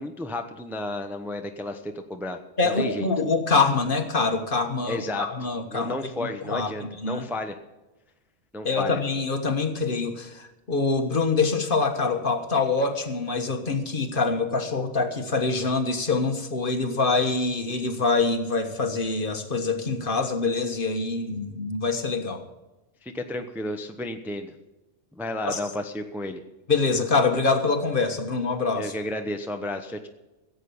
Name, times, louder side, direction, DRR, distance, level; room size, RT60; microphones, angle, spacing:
voice 1, 0.0-3.1 4.9-5.3 5.7-7.6 8.5-9.0 23.0-24.5 25.2-26.4 28.8-30.1, left 1 dB, ahead, 5 dB, 0.8 m, -32 dB
voice 2, 2.6-6.0 6.4-6.7 7.0-7.2 8.6-22.5 25.4-25.6 26.7-28.9, left 4 dB, 45° left, 6 dB, 1.5 m, -25 dB
16.0 x 8.1 x 7.0 m, 1.1 s
omnidirectional pair, 1.3 m